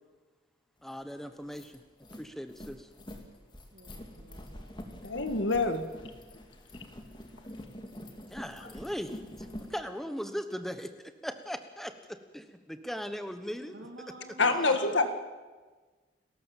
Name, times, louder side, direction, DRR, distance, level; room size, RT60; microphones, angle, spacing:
voice 1, 0.8-1.7 2.2-2.9 8.3-10.9 11.2-13.8 14.4-14.7, equal, ahead, 8 dB, 1.1 m, -39 dB
sound 1, 0.9-1.0 1.3-9.8, left 1 dB, 25° left, 2.1 m, -46 dB
voice 2, 3.7-4.8 13.7-15.1, right 1 dB, 80° right, 1 dB, 2.4 m, -51 dB
voice 3, 5.0-5.9 14.4-15.1, left 3 dB, 80° left, 8 dB, 1.9 m, -26 dB
29.5 x 13.5 x 7.4 m, 1.3 s
head